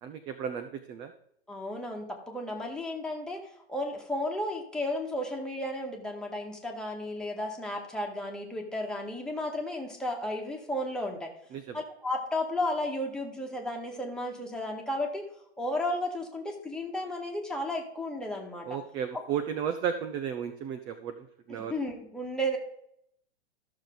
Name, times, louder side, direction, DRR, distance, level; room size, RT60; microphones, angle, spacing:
voice 1, 0.0-1.1 11.5-11.8 18.7-21.1 21.5-21.7, right 8 dB, 15° right, 9 dB, 0.3 m, -34 dB
voice 2, 1.5-3.4 3.7-11.3 11.7-15.2 15.6-18.8 21.5-22.6, left 1 dB, ahead, 0 dB, 1.7 m, -33 dB
13.5 x 6.7 x 3.9 m, 0.72 s
hypercardioid pair, 125°, 33 cm